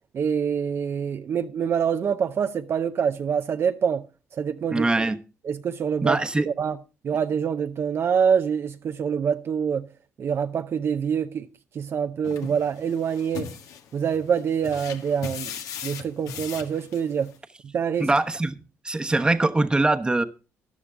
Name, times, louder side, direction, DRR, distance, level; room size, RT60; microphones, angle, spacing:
voice 1, 0.1-4.0 4.3-4.9 5.5-6.2 6.4-6.8 7.0-9.9 10.2-11.5 11.8-13.5 13.9-15.5 15.8-17.3 17.7-18.1, right 7 dB, 50° right, 0.6 m, -25 dB
voice 2, 4.7-5.2 6.0-6.5 18.0-18.6 18.8-20.2, right 2 dB, 15° right, 1.0 m, -22 dB
sound 1, 12.2-17.4, left 8 dB, 90° left, 1.6 m, -39 dB
13.5 x 10.5 x 3.6 m
cardioid pair, 100°, 5 cm